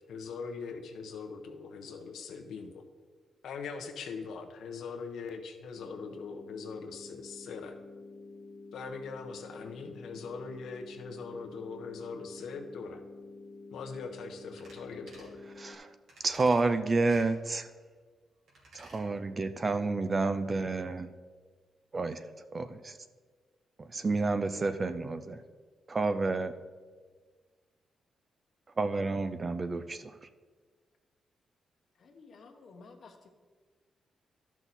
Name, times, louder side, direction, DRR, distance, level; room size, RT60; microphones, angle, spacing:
voice 1, 0.1-2.8 3.4-7.7 8.7-13.0 13.7-15.4, left 5 dB, 75° left, 4 dB, 1.0 m, -41 dB
sound 1, 5.8-15.8, left 3 dB, 10° left, 0.9 m, -49 dB
sound 2, 14.6-14.8 15.1-15.3 16.1-16.6 17.0-17.3 18.5-19.0 19.4-19.5, right 2 dB, 65° right, 2.7 m, -53 dB
voice 2, 15.6-15.9 16.2-17.7 18.7-21.1 21.9-22.2 22.5-22.9 23.8-25.4 25.9-26.5 28.8-30.1, right 3 dB, 25° right, 10 dB, 0.4 m, -30 dB
voice 3, 32.0-33.3, left 4 dB, 45° left, 5 dB, 1.0 m, -53 dB
12.5 x 6.0 x 4.1 m, 1.5 s
wide cardioid pair, 175°, 0 cm